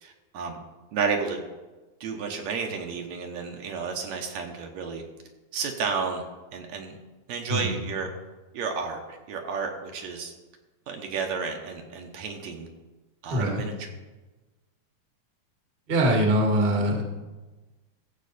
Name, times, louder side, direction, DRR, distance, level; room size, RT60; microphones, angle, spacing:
voice 1, 0.0-0.6 0.9-1.4 2.0-5.0 5.5-6.2 6.5-6.9 7.3-8.1 8.5-10.3 10.9-12.7 13.2-13.9, right 5 dB, 70° right, 3 dB, 2.1 m, -31 dB
voice 2, 15.9-17.0, right 1 dB, 30° right, 1 dB, 1.2 m, -23 dB
15.0 x 7.5 x 4.1 m, 1.2 s
omnidirectional pair, 3.5 m